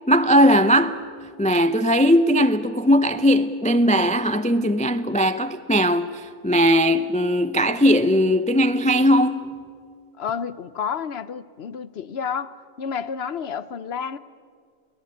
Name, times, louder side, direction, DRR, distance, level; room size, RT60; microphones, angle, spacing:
voice 1, 0.1-1.1 1.4-9.6, equal, 10° left, 0.4 m, -19 dB
voice 2, 10.2-14.2, left 7 dB, 50° left, 1.0 m, -30 dB
29.5 x 20.0 x 8.7 m
omnidirectional pair, 1.5 m